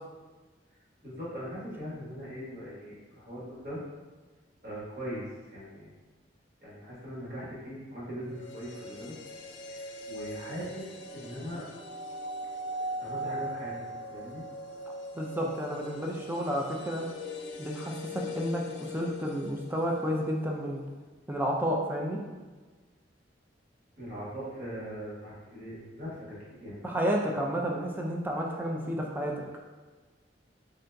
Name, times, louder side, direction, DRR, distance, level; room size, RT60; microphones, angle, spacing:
voice 1, 1.0-3.8 4.6-5.3 5.5-5.9 6.6-9.1 9.7-11.6 12.8-13.8 14.1-14.4 24.0-26.8, equal, 50° right, -8 dB, 1.3 m, -40 dB
sound 1, 8.3-20.4 20.7-20.8, equal, 65° left, 0.3 m, -40 dB
voice 2, 15.1-17.1 17.6-20.8 21.3-22.2 26.8-29.3, equal, 10° right, -1 dB, 0.4 m, -31 dB
3.8 x 2.7 x 2.2 m, 1.3 s
head